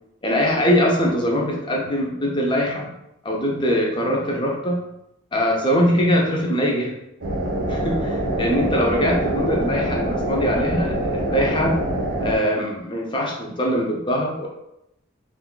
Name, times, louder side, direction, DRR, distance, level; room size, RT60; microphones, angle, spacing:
voice 1, 0.2-2.9 3.2-4.8 5.3-6.9 7.7-11.8 12.2-14.5, equal, 25° left, -1 dB, 0.5 m, -22 dB
sound 1, 7.2-12.4, right 1 dB, 75° right, 0.7 m, -25 dB
2.5 x 2.2 x 3.7 m, 0.83 s
head